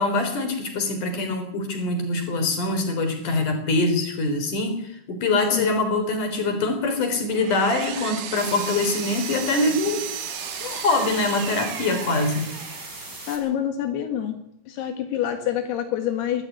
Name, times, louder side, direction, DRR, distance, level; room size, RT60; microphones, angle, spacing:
voice 1, 0.0-10.0 10.6-12.5, left 2 dB, 55° left, 7 dB, 5.1 m, -24 dB
Power tool, 7.0-13.1, right 9 dB, 80° right, 3.6 m, -35 dB
sound 1, 8.4-13.4, right 2 dB, 25° right, 6.4 m, -39 dB
voice 2, 13.3-14.4 14.7-16.4, left 10 dB, 85° left, 6 dB, 3.6 m, -26 dB
22.0 x 13.0 x 9.4 m, 0.77 s
omnidirectional pair, 4.5 m